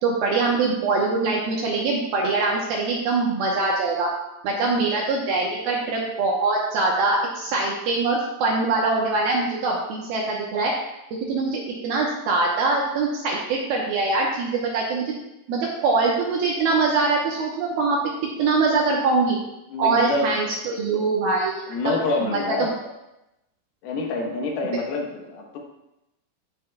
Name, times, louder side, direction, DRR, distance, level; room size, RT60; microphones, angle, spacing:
voice 1, 0.0-4.1 4.4-10.7 11.3-15.1 15.5-18.0 18.4-19.4 19.8-21.6 22.2-22.7, right 3 dB, 75° right, -2 dB, 2.2 m, -23 dB
voice 2, 19.7-20.3 21.7-22.7 23.8-25.6, left 2 dB, 70° left, 0 dB, 2.6 m, -27 dB
16.5 x 5.9 x 2.3 m, 0.91 s
omnidirectional pair, 5.4 m